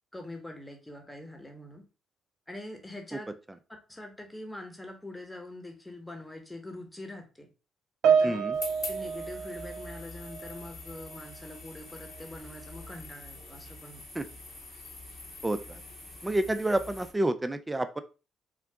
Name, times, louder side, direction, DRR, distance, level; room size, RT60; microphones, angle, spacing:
voice 1, 0.1-1.8 2.5-3.3 3.9-7.5 8.0-8.5 8.9-14.0, left 1 dB, 10° left, 4 dB, 1.0 m, -44 dB
Piano, 8.0-10.7 10.9-11.3 12.1-12.2, right 6 dB, 75° right, 0.5 m, -28 dB
voice 2, 8.2-8.5 14.2-14.3 15.4-15.8 16.2-18.0, right 1 dB, 15° right, 9 dB, 0.4 m, -29 dB
sound 1, 8.5-17.1, left 2 dB, 60° left, 1.5 m, -45 dB
3.8 x 2.3 x 3.4 m, 0.32 s
supercardioid pair, 60°, 0 cm